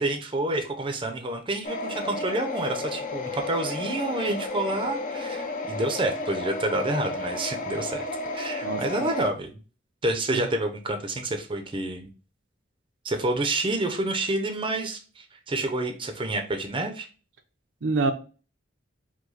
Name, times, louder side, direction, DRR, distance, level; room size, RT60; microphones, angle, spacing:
voice 1, 0.0-8.1 8.3-9.5 10.0-12.1 13.0-17.1, right 2 dB, 25° right, 0.6 m, -28 dB
sound 1, 1.6-9.3, left 2 dB, 45° left, 0.6 m, -32 dB
voice 2, 8.6-9.1 10.3-10.4 17.8-18.1, right 3 dB, 70° right, 0.6 m, -27 dB
4.9 x 2.2 x 3.9 m
head